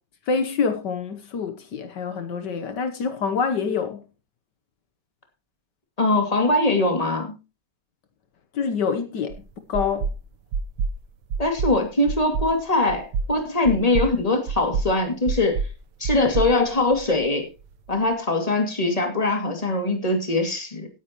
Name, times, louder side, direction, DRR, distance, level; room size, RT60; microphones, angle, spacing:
voice 1, 0.3-4.0 8.5-9.4 9.7-10.1, left 5 dB, 70° left, 1.7 m, -26 dB
voice 2, 6.0-7.4 11.4-15.6 16.0-17.5 17.9-20.9, left 2 dB, 20° left, 2.5 m, -22 dB
sound 1, 9.3-9.4 9.7-10.2 10.5-11.0 11.3-11.8 12.1-12.5 12.9-13.3 13.6-14.1 14.5-14.9 15.3-15.7 16.0-17.2, right 5 dB, 70° right, 1.6 m, -27 dB
17.5 x 9.6 x 3.0 m
omnidirectional pair, 1.9 m